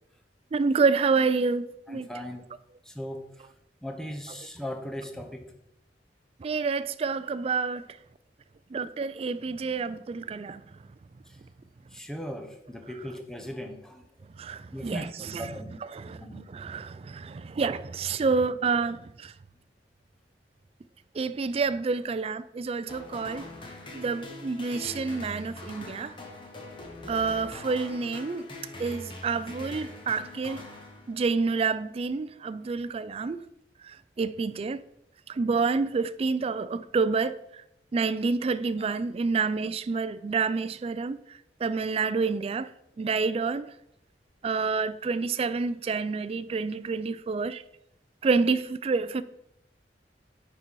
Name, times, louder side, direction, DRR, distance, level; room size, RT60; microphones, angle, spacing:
voice 1, 0.5-2.1 6.4-7.9 8.7-10.6 14.4-15.5 15.9-19.3 21.1-23.5 23.9-26.1 27.1-28.5 28.8-30.6 31.1-33.4 33.8-34.8 35.3-37.6 37.9-41.2 41.6-42.7 43.0-43.7 44.4-47.6 48.2-49.2, right 4 dB, 35° right, 0.3 m, -28 dB
voice 2, 1.9-2.4 2.8-3.5 3.8-5.5 11.3-11.4 11.9-14.0 14.7-15.8 16.1-16.4, equal, 5° left, 0.8 m, -38 dB
sound 1, 22.9-31.5, left 2 dB, 30° left, 1.3 m, -43 dB
9.4 x 4.0 x 4.6 m
head